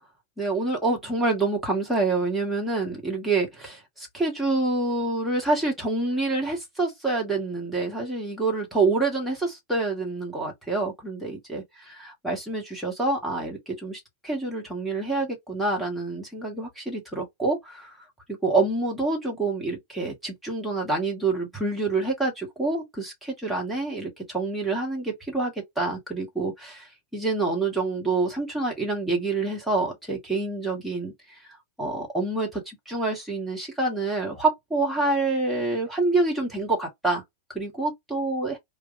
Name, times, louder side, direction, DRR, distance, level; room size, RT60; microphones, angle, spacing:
voice 1, 0.4-18.0 18.3-31.1 31.8-37.2 37.6-38.6, right 3 dB, ahead, 1.6 m, -27 dB
3.2 x 2.4 x 2.6 m
figure-of-eight pair, 90°, 0 cm